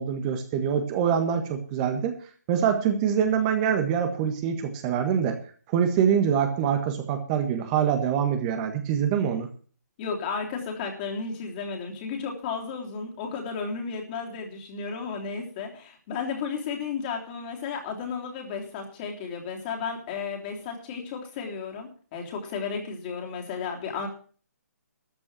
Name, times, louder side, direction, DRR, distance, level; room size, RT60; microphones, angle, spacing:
voice 1, 0.0-2.1 2.5-5.4 5.7-9.5, right 8 dB, 25° right, 7 dB, 1.6 m, -25 dB
voice 2, 10.0-24.1, left 5 dB, 30° left, 1 dB, 3.3 m, -33 dB
13.5 x 6.2 x 8.9 m, 0.43 s
hypercardioid pair, 150°, 9 cm